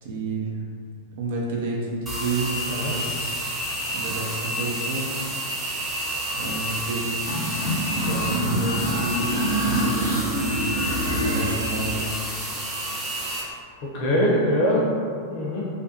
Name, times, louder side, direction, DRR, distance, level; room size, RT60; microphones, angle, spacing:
voice 1, 0.0-0.5 1.2-3.3 3.9-5.1 6.3-10.6 11.1-12.0, right 3 dB, 55° right, -3 dB, 0.5 m, -30 dB
sound 1, 2.1-13.4, equal, 10° right, 0.7 m, -30 dB
sound 2, 7.2-12.1, equal, 85° left, 0.6 m, -26 dB
voice 2, 13.8-15.0 15.3-15.7, equal, 45° left, -4 dB, 0.6 m, -23 dB
2.5 x 2.2 x 2.8 m, 2.2 s
figure-of-eight pair, 90°, 0 cm